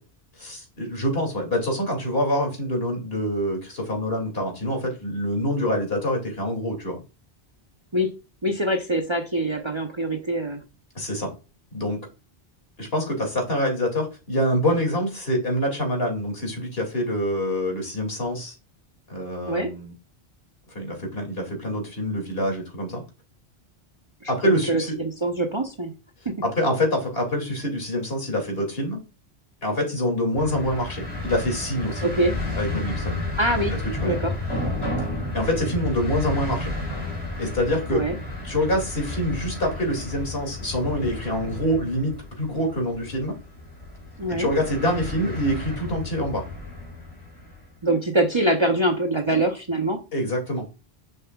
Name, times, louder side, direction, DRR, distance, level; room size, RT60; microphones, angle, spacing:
voice 1, 0.4-7.0 10.9-11.3 11.7-12.0 12.8-18.5 19.1-19.9 20.7-23.0 24.3-25.0 26.4-29.0 29.6-32.1 32.6-33.3 34.0-34.1 35.3-36.7 37.4-38.0 38.4-43.3 44.3-46.5 50.1-50.7, equal, 65° left, 2 dB, 2.8 m, -26 dB
voice 2, 8.4-10.6 19.5-19.7 24.2-25.9 26.2-26.3 32.0-32.3 33.4-33.7 34.0-34.3 37.9-38.2 44.2-44.5 47.8-50.0, right 1 dB, 30° right, 3 dB, 0.8 m, -24 dB
sound 1, 30.4-47.6, left 2 dB, 25° left, 2.2 m, -32 dB
7.0 x 5.7 x 2.3 m, 0.30 s
omnidirectional pair, 1.1 m